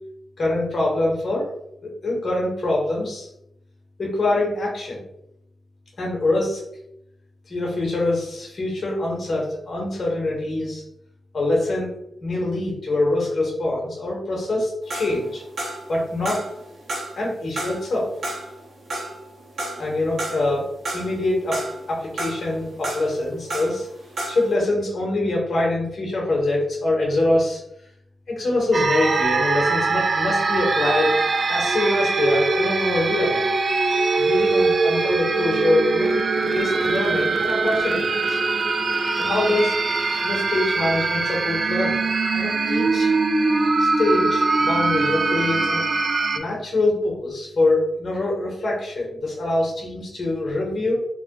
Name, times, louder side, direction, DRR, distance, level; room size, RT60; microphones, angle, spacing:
voice 1, 0.4-1.5 1.8-3.3 4.0-5.0 6.0-6.6 7.5-10.8 11.3-11.9 12.2-15.4 15.9-16.5 17.1-18.1 19.8-23.9 24.3-27.6 28.3-31.2 31.5-33.5 34.2-36.2 36.4-38.4 39.2-39.8 40.2-42.1 42.3-43.1 43.8-45.8 46.3-50.9, left 2 dB, 55° left, -3 dB, 0.8 m, -24 dB
sound 1, 14.9-16.0 16.3-17.2 17.6-20.5 20.9-21.9 22.2-23.8 24.1-24.5, right 1 dB, 80° right, 1.0 m, -31 dB
sound 2, 28.7-46.4, right 3 dB, 55° right, 0.3 m, -22 dB
3.0 x 2.1 x 2.8 m, 0.77 s
cardioid pair, 65°, 0 cm